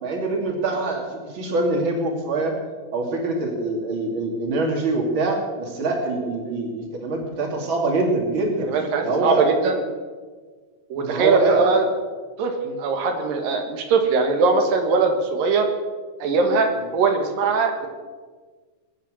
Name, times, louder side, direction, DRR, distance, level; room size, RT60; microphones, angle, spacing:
voice 1, 0.0-2.5 2.9-8.7 9.0-9.4 11.0-11.8 12.6-12.8, right 2 dB, 35° right, 2 dB, 2.9 m, -24 dB
voice 2, 8.6-9.8 10.9-11.9 12.4-12.5 12.8-15.7 16.2-17.9, right 4 dB, 75° right, 5 dB, 3.2 m, -21 dB
21.5 x 9.2 x 6.3 m, 1.4 s
omnidirectional pair, 4.1 m